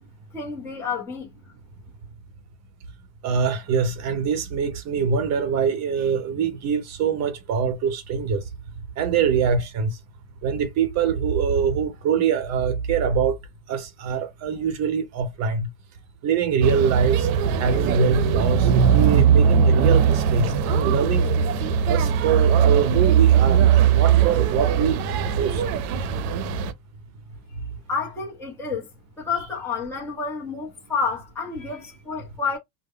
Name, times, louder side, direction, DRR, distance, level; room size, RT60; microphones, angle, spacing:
voice 1, 0.3-1.3 27.9-28.9 29.2-32.6, left 5 dB, 5° left, 0.6 m, -29 dB
voice 2, 3.2-8.4 9.0-9.9 10.4-13.4 13.7-15.7 16.2-17.3 17.6-21.3 21.9-25.0 25.4-25.6, right 6 dB, 40° right, 0.8 m, -24 dB
sound 1, 16.6-26.7, right 7 dB, 70° right, 0.6 m, -19 dB
2.1 x 2.1 x 3.6 m
cardioid pair, 150°, 43 cm